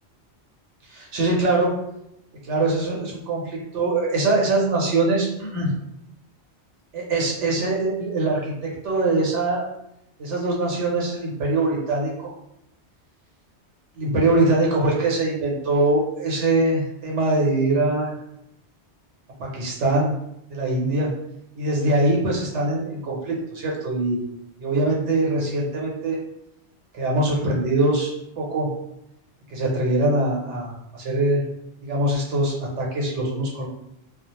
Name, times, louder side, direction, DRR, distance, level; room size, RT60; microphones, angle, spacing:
voice 1, 0.9-1.7 2.5-5.7 6.9-8.5 8.8-9.7 10.2-12.3 14.0-18.2 19.4-20.2 20.5-21.1 21.6-24.2 24.6-26.2 26.9-28.7 29.5-31.4 31.8-33.7, right 2 dB, 85° right, -2 dB, 1.0 m, -23 dB
2.4 x 2.0 x 2.8 m, 0.83 s
omnidirectional pair, 1.2 m